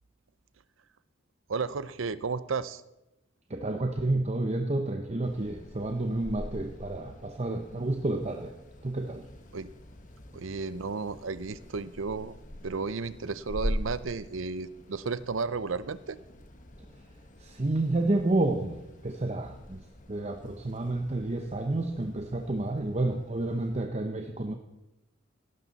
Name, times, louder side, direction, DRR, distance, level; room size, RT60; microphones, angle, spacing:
voice 1, 1.5-2.8 9.5-9.7 10.3-12.4 12.6-16.2, right 4 dB, 85° right, 16 dB, 0.6 m, -33 dB
voice 2, 3.5-8.5 8.8-9.3 17.4-24.5, right 2 dB, 35° right, 5 dB, 0.8 m, -30 dB
sound 1, 5.2-23.9, equal, 40° left, 1.3 m, -43 dB
16.5 x 12.0 x 4.1 m, 0.93 s
head